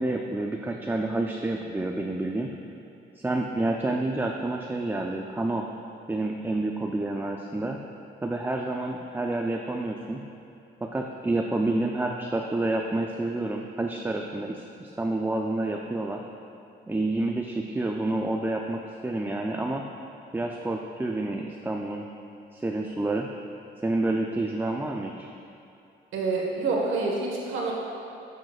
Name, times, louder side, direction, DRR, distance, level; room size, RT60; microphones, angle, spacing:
voice 1, 0.0-2.5 3.2-5.7 6.1-7.8 8.2-10.2 10.8-16.2 16.9-19.8 20.3-22.0 22.5-23.3 23.8-25.3, right 2 dB, 10° right, 2 dB, 0.4 m, -29 dB
voice 2, 26.1-27.7, right 3 dB, 80° right, -2 dB, 1.5 m, -27 dB
10.5 x 6.4 x 2.4 m, 2.7 s
cardioid pair, 90°, 20 cm